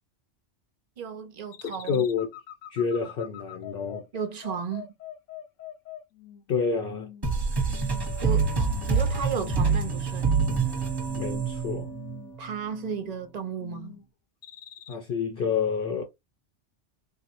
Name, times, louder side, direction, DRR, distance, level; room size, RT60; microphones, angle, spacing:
voice 1, 1.0-2.0 4.1-4.9 8.2-8.5 8.8-10.3 12.4-14.0, right 7 dB, 50° right, 0.5 m, -34 dB
sound 1, 1.5-6.5 6.8-7.3 7.7-8.2 8.6-9.0 9.4-9.9 10.2-10.8 11.1-11.6 11.9-12.4 12.7-13.2 13.6-14.1 14.4-14.9, left 12 dB, 85° left, 1.0 m, -44 dB
voice 2, 1.6-2.3 2.7-4.0 6.5-7.1 11.2-11.9 14.9-16.0, left 6 dB, 60° left, 0.7 m, -28 dB
sound 2, 7.2-12.5, right 5 dB, 20° right, 0.9 m, -26 dB
3.5 x 2.1 x 2.9 m
omnidirectional pair, 1.2 m